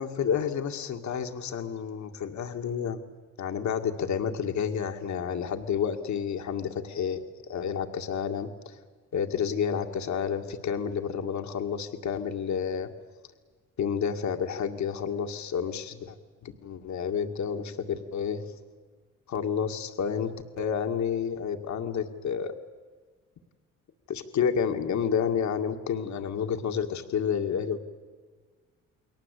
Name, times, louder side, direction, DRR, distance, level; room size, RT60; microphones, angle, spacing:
voice 1, 0.0-3.0 3.4-8.8 9.1-12.9 13.8-16.2 16.4-18.4 19.3-22.5 24.1-27.8, left 7 dB, 70° left, 5 dB, 2.2 m, -30 dB
29.5 x 22.0 x 8.4 m, 1.5 s
cardioid pair, 90°, 30 cm